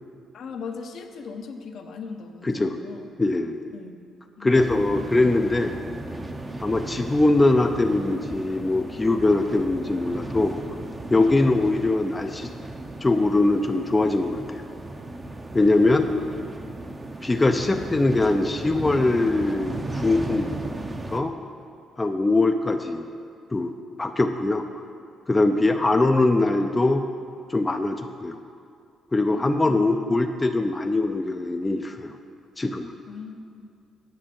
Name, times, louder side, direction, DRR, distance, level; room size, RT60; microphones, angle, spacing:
voice 1, 0.3-3.1 3.7-3.9 4.4-5.1 15.7-16.4 25.5-25.8 29.3-30.2 33.1-33.7, left 5 dB, 65° left, 4 dB, 0.8 m, -40 dB
voice 2, 2.4-2.8 3.2-3.6 4.4-5.8 6.6-10.6 11.1-12.5 13.0-14.6 15.5-16.1 17.2-20.5 21.1-21.3 22.0-23.1 23.5-23.7 24.0-24.7 25.3-27.0 27.5-28.4 29.1-32.2 32.6-32.9, left 2 dB, 20° left, 5 dB, 0.5 m, -22 dB
sound 1, 4.5-21.2, right 2 dB, 25° right, 0.8 m, -36 dB
8.7 x 6.1 x 7.6 m, 2.3 s
cardioid pair, 90°, 0 cm